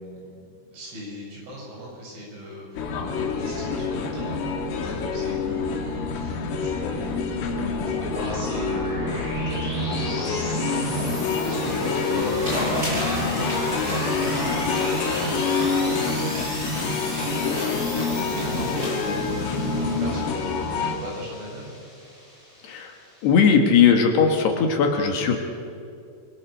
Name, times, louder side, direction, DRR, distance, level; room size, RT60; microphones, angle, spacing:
voice 1, 0.0-10.9 11.4-14.8 15.1-16.2 18.3-21.7, equal, 80° right, -4 dB, 10.5 m, -38 dB
sound 1, 2.8-21.0, left 4 dB, 90° left, 4.5 m, -27 dB
sound 2, 4.8-23.3, left 1 dB, 5° left, 7.6 m, -34 dB
sound 3, 12.4-19.0, left 1 dB, 15° right, 7.6 m, -34 dB
voice 2, 23.2-25.4, left 6 dB, 65° left, 3 dB, 3.4 m, -18 dB
29.0 x 22.0 x 6.5 m, 2.5 s
omnidirectional pair, 5.6 m